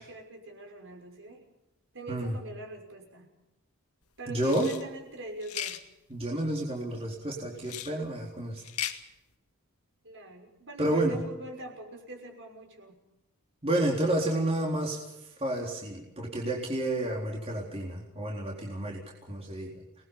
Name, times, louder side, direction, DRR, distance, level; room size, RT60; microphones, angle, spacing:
voice 1, 0.0-1.4 1.9-3.3 4.2-5.8 10.0-13.0, right 2 dB, 55° right, 3 dB, 6.0 m, -44 dB
voice 2, 4.3-4.7 6.1-8.6 10.8-11.2 13.6-19.0 19.3-19.8, right 1 dB, 25° right, -2 dB, 4.0 m, -30 dB
sound 1, 4.4-4.8 5.4-5.8 7.6-7.9 8.6-9.0, left 10 dB, 90° left, 2.0 m, -36 dB
29.0 x 20.0 x 5.6 m, 0.94 s
head